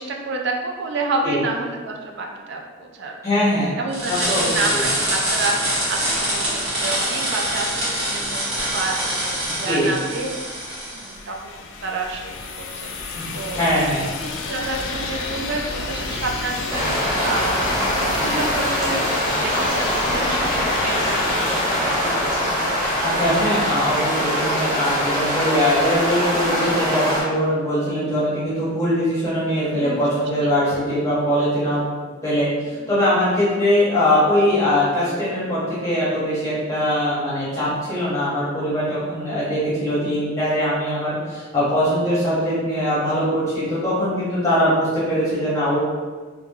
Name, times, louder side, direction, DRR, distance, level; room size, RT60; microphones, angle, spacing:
voice 1, 0.0-3.2 3.8-10.4 10.9-12.9 13.3-17.8 18.2-22.4 29.8-30.1 30.4-31.1 32.7-32.9, right 3 dB, 55° right, 2 dB, 0.4 m, -29 dB
voice 2, 3.2-3.7 4.1-4.8 9.7-9.9 13.1-13.3 13.5-14.0 23.0-31.8 32.2-45.8, equal, 15° left, -10 dB, 0.8 m, -21 dB
sound 1, 3.9-11.1, right 1 dB, 75° right, 1.3 m, -24 dB
sound 2, 10.2-23.9, left 3 dB, 60° left, 0.3 m, -30 dB
sound 3, 16.7-27.2, equal, 35° right, 0.9 m, -23 dB
3.1 x 2.3 x 2.3 m, 1.4 s
head